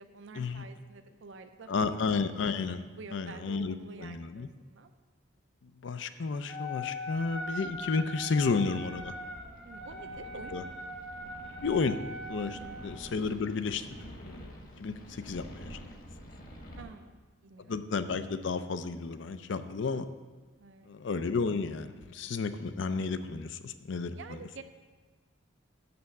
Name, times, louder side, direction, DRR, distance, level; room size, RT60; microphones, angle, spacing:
voice 1, 0.0-2.0 2.3-2.4 3.0-4.9 9.6-10.8 12.4-12.8 16.8-17.7 20.6-20.9 24.1-24.6, right 4 dB, 65° right, 7 dB, 0.5 m, -49 dB
voice 2, 1.7-2.8 3.1-3.7 4.0-4.5 5.6-9.1 10.5-10.6 11.6-12.0 12.3-13.9 14.2-14.5 14.8-15.8 17.6-20.1 20.9-24.4, left 4 dB, 65° left, 11 dB, 0.5 m, -32 dB
Wind instrument woodwind instrument, 6.5-12.9, left 1 dB, 5° left, 0.7 m, -41 dB
sound 1, 7.3-16.8, equal, 45° left, 1.3 m, -49 dB
6.8 x 6.4 x 7.0 m, 1.3 s
head